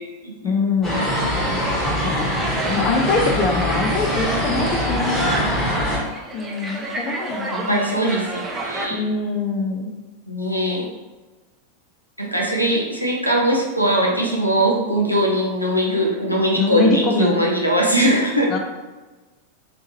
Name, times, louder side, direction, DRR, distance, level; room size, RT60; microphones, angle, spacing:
voice 1, 0.4-1.0 2.0-2.3 2.7-5.1 6.3-8.0 8.9-9.9 16.5-17.4 18.5-18.6, left 4 dB, 30° left, 2 dB, 0.4 m, -23 dB
sound 1, 0.8-6.0, equal, 10° left, 1.2 m, -23 dB
sound 2, 2.3-8.9, right 2 dB, 15° right, 0.5 m, -30 dB
voice 2, 7.5-9.0 10.3-10.9 12.2-18.5, right 1 dB, 90° left, -1 dB, 0.6 m, -21 dB
3.4 x 2.9 x 2.8 m, 1.2 s
figure-of-eight pair, 90°, 0 cm